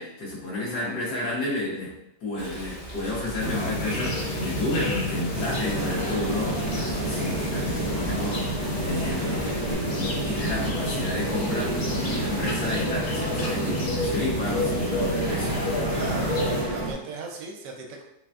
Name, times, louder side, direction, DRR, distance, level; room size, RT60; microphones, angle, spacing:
voice 1, 0.0-9.5 9.9-15.6, left 1 dB, 65° left, -6 dB, 1.7 m, -31 dB
Rain, 2.4-9.7, right 1 dB, 40° left, 1.0 m, -40 dB
sound 1, 3.4-16.6, left 1 dB, 85° left, 0.6 m, -29 dB
sound 2, 5.3-16.9, right 2 dB, 55° right, 0.4 m, -32 dB
voice 2, 15.9-18.0, right 3 dB, 80° right, 1 dB, 1.2 m, -37 dB
3.9 x 3.3 x 2.3 m, 0.86 s
omnidirectional pair, 1.9 m